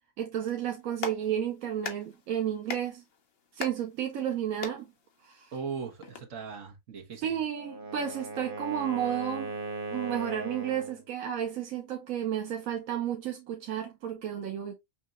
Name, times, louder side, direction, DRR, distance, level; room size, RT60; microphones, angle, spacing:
voice 1, 0.2-3.0 3.5-4.9 5.2-5.5 7.2-9.5 9.9-14.7, right 10 dB, 80° right, 1.1 m, -32 dB
Clapping, 0.7-6.2, left 5 dB, 50° left, 0.9 m, -43 dB
voice 2, 5.5-7.3, right 6 dB, 65° right, 1.5 m, -38 dB
Wind instrument woodwind instrument, 7.4-11.0, right 3 dB, 45° right, 1.0 m, -38 dB
5.9 x 2.7 x 2.4 m
omnidirectional pair, 1.4 m